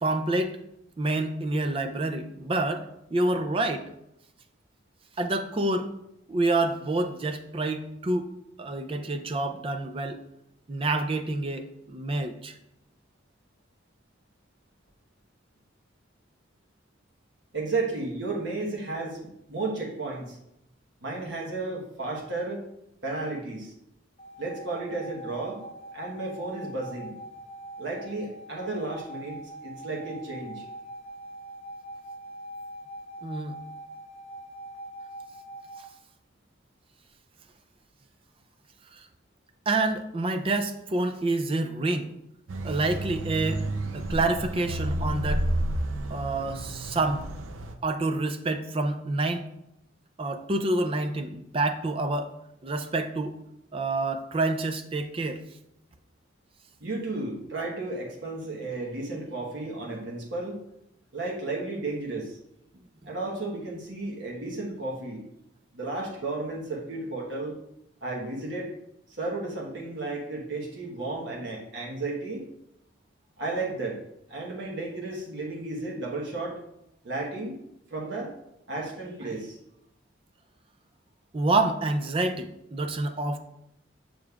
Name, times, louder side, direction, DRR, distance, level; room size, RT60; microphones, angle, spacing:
voice 1, 0.0-0.6 1.0-3.9 5.2-5.9 6.3-8.3 8.6-10.2 10.7-12.6 33.2-33.6 38.9-39.0 39.7-42.1 42.6-43.6 43.9-45.5 46.1-47.3 47.8-49.4 50.2-52.3 52.6-53.4 53.7-55.4 81.3-83.4, right 2 dB, 30° right, 7 dB, 0.4 m, -28 dB
voice 2, 17.5-20.4 21.0-22.6 23.0-23.7 24.4-25.6 25.9-27.2 27.8-30.6 56.8-60.6 61.1-62.4 63.0-65.2 65.7-67.6 68.0-68.7 69.2-72.4 73.4-74.0 74.3-76.6 77.0-77.6 77.9-78.3 78.7-79.6, right 2 dB, 65° right, -3 dB, 1.2 m, -33 dB
sound 1, 24.2-35.9, right 1 dB, 30° left, 0.5 m, -43 dB
sound 2, 42.5-47.7, right 1 dB, 90° right, 0.6 m, -31 dB
6.7 x 6.1 x 2.4 m, 0.81 s
head